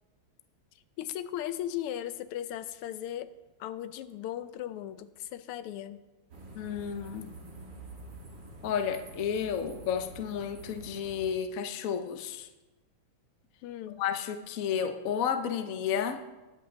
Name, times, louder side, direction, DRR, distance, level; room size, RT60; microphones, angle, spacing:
voice 1, 1.0-3.3 3.6-6.0 13.6-14.0, left 11 dB, 85° left, 12 dB, 1.6 m, -37 dB
sound 1, 6.3-11.3, right 2 dB, 55° right, 2.2 m, -47 dB
voice 2, 6.5-7.4 8.6-12.5 13.9-16.2, left 8 dB, 60° left, 7 dB, 0.9 m, -32 dB
20.0 x 8.3 x 3.3 m, 1.1 s
omnidirectional pair, 2.4 m